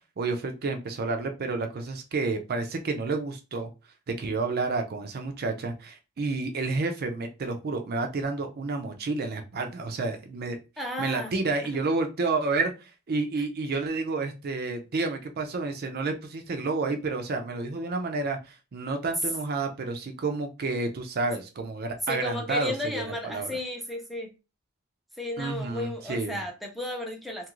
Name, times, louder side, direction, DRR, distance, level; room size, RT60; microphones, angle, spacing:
voice 1, 0.2-3.7 4.1-10.6 11.0-23.5 25.4-26.4, right 3 dB, 50° right, 0.5 m, -30 dB
voice 2, 10.8-11.3 13.4-13.5 22.0-24.3 25.2-27.5, left 1 dB, ahead, 0.5 m, -33 dB
2.8 x 2.4 x 3.0 m
head